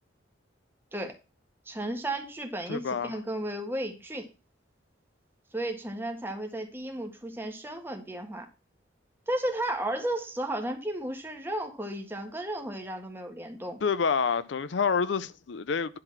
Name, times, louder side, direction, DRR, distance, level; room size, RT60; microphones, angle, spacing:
voice 1, 1.7-4.3 5.5-8.5 9.3-13.8, right 1 dB, 10° right, 1.5 m, -34 dB
voice 2, 2.7-3.2 13.8-16.0, left 5 dB, 70° left, 0.5 m, -28 dB
10.5 x 4.1 x 5.9 m
head